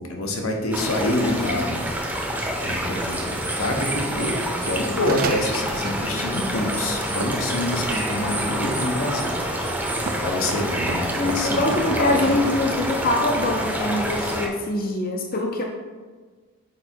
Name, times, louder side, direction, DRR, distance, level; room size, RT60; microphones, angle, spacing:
voice 1, 0.1-1.9 2.6-9.8 10.2-12.5, left 1 dB, 80° left, 2 dB, 1.1 m, -27 dB
sound 1, 0.7-14.5, right 1 dB, 10° right, 0.7 m, -27 dB
sound 2, 3.4-8.3 8.9-9.4 9.9-12.6 12.9-13.1, right 4 dB, 40° right, 0.4 m, -36 dB
Fireworks, 7.2-13.7, right 3 dB, 85° right, 0.6 m, -38 dB
voice 2, 11.2-15.6, left 2 dB, 40° left, 2 dB, 0.6 m, -24 dB
6.5 x 5.0 x 4.5 m, 1.4 s
head